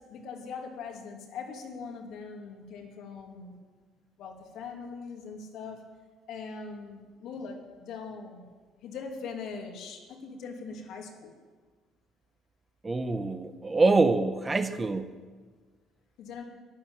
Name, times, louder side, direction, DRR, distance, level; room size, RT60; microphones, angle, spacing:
voice 1, 0.0-3.5 4.2-5.9 6.3-8.5 8.8-11.3 16.2-16.4, left 5 dB, 70° left, 2 dB, 2.5 m, -41 dB
voice 2, 12.8-15.1, right 3 dB, 20° right, 9 dB, 0.9 m, -25 dB
11.0 x 11.0 x 8.8 m, 1.5 s
cardioid pair, 110°, 0 cm